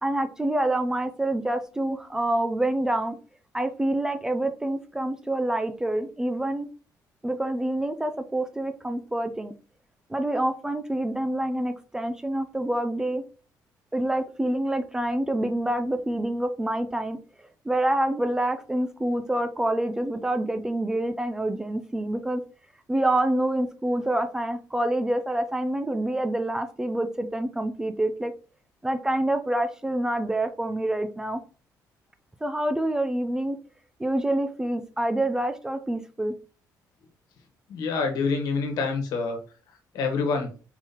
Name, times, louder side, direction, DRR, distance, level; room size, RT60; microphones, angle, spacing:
voice 1, 0.0-3.2 3.5-6.7 7.2-9.5 10.1-13.2 13.9-17.2 17.7-22.4 22.9-28.3 28.8-31.4 32.4-33.6 34.0-36.3, right 1 dB, 10° right, 9 dB, 0.3 m, -27 dB
voice 2, 37.7-39.4 39.9-40.5, left 4 dB, 75° left, 4 dB, 1.3 m, -26 dB
4.6 x 3.7 x 2.9 m, 0.36 s
cardioid pair, 155°, 7 cm